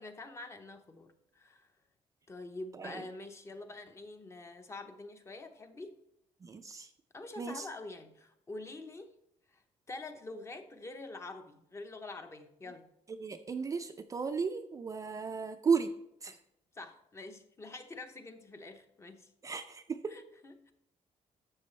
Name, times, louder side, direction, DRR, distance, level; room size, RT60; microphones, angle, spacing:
voice 1, 0.0-1.7 2.3-6.0 7.1-9.1 9.5-9.6 9.9-12.9 16.3-16.4 16.7-19.3 20.1-20.7, left 2 dB, 25° left, 7 dB, 0.7 m, -46 dB
voice 2, 6.4-6.9 7.4-7.7 13.2-15.9 16.2-16.3 19.4-20.1, right 5 dB, 25° right, 7 dB, 0.4 m, -34 dB
12.0 x 6.9 x 3.2 m, 0.80 s
wide cardioid pair, 175°, 12 cm